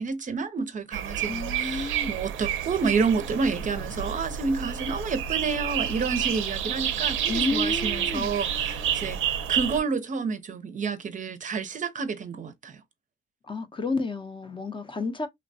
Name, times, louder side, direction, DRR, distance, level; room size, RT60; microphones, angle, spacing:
voice 1, 0.0-12.8, right 5 dB, 40° right, 0.5 m, -29 dB
sound 1, 0.9-9.8, right 9 dB, 85° right, 0.5 m, -29 dB
voice 2, 1.2-2.1 7.3-8.3 13.4-15.3, left 3 dB, 25° left, 0.6 m, -31 dB
3.0 x 2.1 x 2.6 m
cardioid pair, 90°, 20 cm